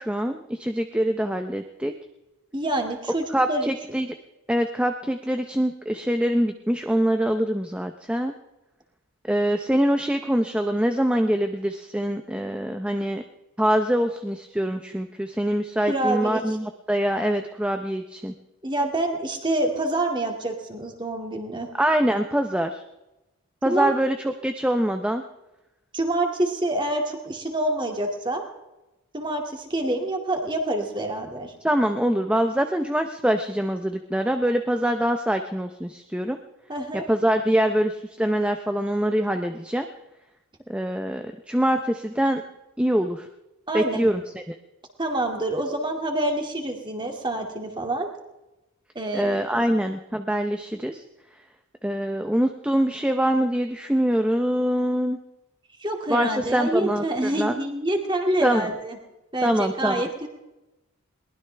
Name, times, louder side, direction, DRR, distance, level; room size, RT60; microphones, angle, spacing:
voice 1, 0.0-1.9 3.3-4.1 4.5-8.3 9.2-13.2 13.6-18.3 21.8-22.8 23.6-24.2 24.4-25.2 31.6-36.4 37.1-39.9 40.7-42.4 42.8-43.3 43.7-44.5 49.1-51.0 51.8-55.2 56.1-57.5 58.4-58.7 59.4-59.9, equal, 5° right, 6 dB, 0.6 m, -24 dB
voice 2, 2.5-4.0 15.9-16.6 18.6-21.7 23.6-23.9 25.9-28.4 29.1-31.5 36.7-37.0 43.7-44.1 45.0-48.1 48.9-49.6 55.8-59.0 59.3-60.3, right 1 dB, 20° right, 3 dB, 2.3 m, -27 dB
22.0 x 19.5 x 3.4 m, 0.99 s
head